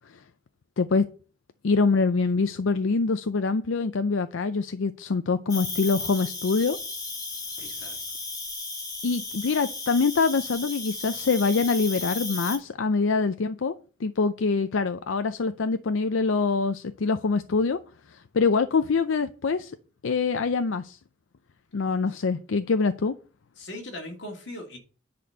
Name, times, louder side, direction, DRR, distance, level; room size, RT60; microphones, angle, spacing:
voice 1, 1.6-6.8 9.0-13.8 14.0-17.8 18.1-19.7 20.0-21.0 21.7-23.2, left 4 dB, 85° left, 0.5 m, -24 dB
Cricket, 5.5-12.6, left 3 dB, 20° left, 1.7 m, -35 dB
voice 2, 7.6-8.0 23.6-24.8, left 1 dB, 65° left, 2.6 m, -39 dB
10.5 x 4.3 x 6.6 m
head